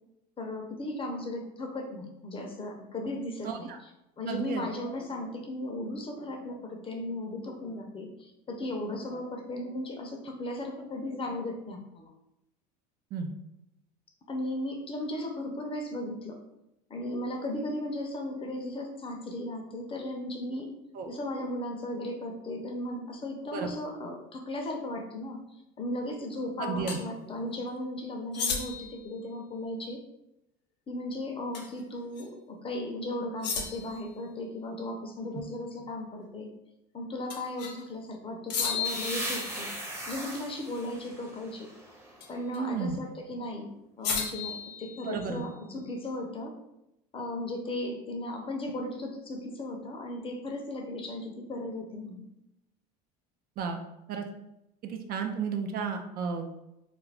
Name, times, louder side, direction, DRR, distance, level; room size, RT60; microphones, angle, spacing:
voice 1, 0.4-3.7 4.2-12.1 14.3-16.4 16.9-20.7 21.1-25.4 25.8-30.0 30.9-36.5 36.9-39.7 40.1-41.7 42.3-46.5 47.1-52.3, left 1 dB, 25° left, 2 dB, 0.6 m, -36 dB
voice 2, 3.4-3.8 4.3-4.6 13.1-13.3 20.9-21.1 23.5-23.7 26.6-27.0 35.3-35.4 42.5-43.0 45.1-45.4 53.6-53.8 54.1-54.2 54.8-56.5, right 6 dB, 45° right, 4 dB, 0.4 m, -33 dB
sound 1, 26.9-27.0 28.3-29.0 31.5-31.8 32.2-32.3 33.4-34.0 37.3-37.8 38.5-39.9 42.2-42.6 44.0-45.4, left 6 dB, 90° left, 0.7 m, -34 dB
sound 2, 38.8-42.5, right 1 dB, 10° right, 0.7 m, -38 dB
2.4 x 2.3 x 3.3 m, 0.88 s
supercardioid pair, 90°, 21 cm